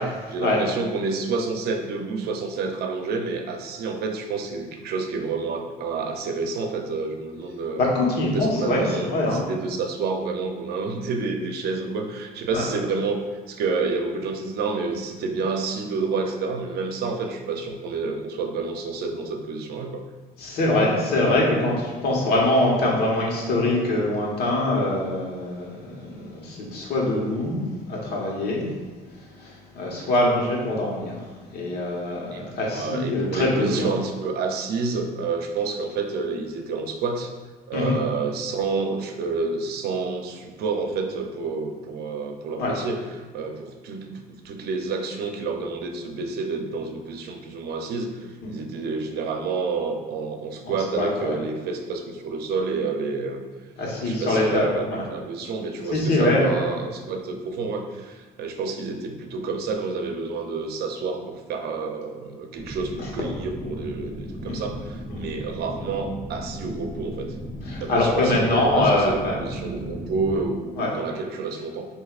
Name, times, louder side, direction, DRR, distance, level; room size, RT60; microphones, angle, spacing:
voice 1, 0.3-7.8 8.3-20.0 20.7-20.9 32.3-37.3 37.7-43.0 43.3-53.4 54.0-67.3 67.8-71.9, right 4 dB, 70° right, 4 dB, 0.6 m, -29 dB
voice 2, 7.8-9.4 12.5-12.6 20.4-28.7 29.1-33.9 37.7-37.9 42.6-42.7 48.4-48.5 50.6-51.4 53.8-55.1 55.9-56.6 63.0-63.1 64.5-64.6 65.1-65.3 67.7-69.4 70.8-70.9, left 1 dB, 70° left, -3 dB, 1.3 m, -23 dB
sound 1, 62.5-70.5, right 1 dB, 30° right, 0.9 m, -36 dB
7.8 x 2.7 x 2.4 m, 1.3 s
cardioid pair, 110°, 17 cm